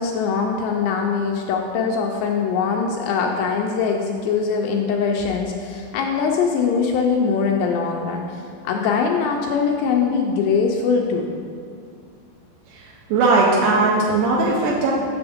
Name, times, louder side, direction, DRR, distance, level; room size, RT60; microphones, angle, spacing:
voice 1, 0.0-11.3, left 5 dB, 85° left, 1 dB, 2.5 m, -22 dB
voice 2, 12.7-14.9, right 3 dB, 80° right, -4 dB, 2.5 m, -19 dB
7.1 x 6.9 x 3.5 m, 2.2 s
omnidirectional pair, 5.1 m